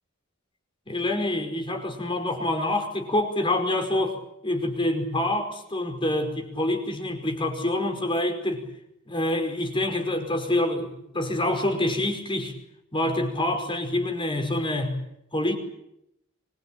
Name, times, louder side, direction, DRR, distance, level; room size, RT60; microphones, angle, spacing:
voice 1, 0.9-4.2 4.4-8.6 9.1-12.6 12.9-15.0 15.3-15.6, left 1 dB, 25° left, 5.1 m, -26 dB
25.0 x 22.5 x 8.9 m
head